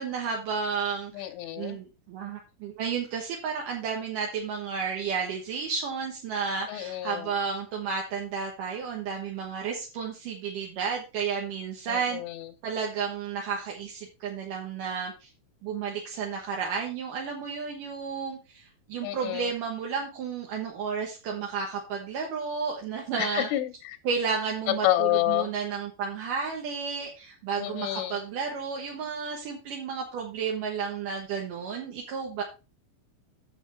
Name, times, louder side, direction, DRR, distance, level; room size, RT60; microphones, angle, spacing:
voice 1, 0.0-1.3 1.5-12.2 12.6-15.3 15.6-23.5 24.0-32.4, right 6 dB, 65° right, 0 dB, 2.2 m, -32 dB
voice 2, 1.1-1.8 6.7-7.3 11.9-12.5 19.0-19.5 23.2-24.0 24.8-25.5 27.6-28.2, left 15 dB, 85° left, 8 dB, 3.5 m, -29 dB
8.3 x 7.1 x 4.6 m, 0.30 s
omnidirectional pair, 5.5 m